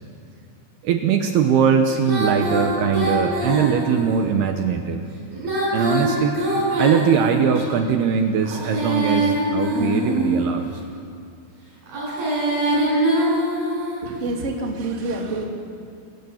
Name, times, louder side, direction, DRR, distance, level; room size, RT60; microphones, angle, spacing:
voice 1, 0.8-5.0 5.7-6.4 6.8-10.7, right 7 dB, 75° right, 5 dB, 2.7 m, -21 dB
Female singing, 2.1-4.2 5.3-7.6 8.4-10.6 11.8-14.1, right 1 dB, 55° right, 8.4 m, -23 dB
voice 2, 14.0-15.5, right 2 dB, 25° right, 0 dB, 1.9 m, -27 dB
27.0 x 17.0 x 7.2 m, 2.4 s
omnidirectional pair, 5.2 m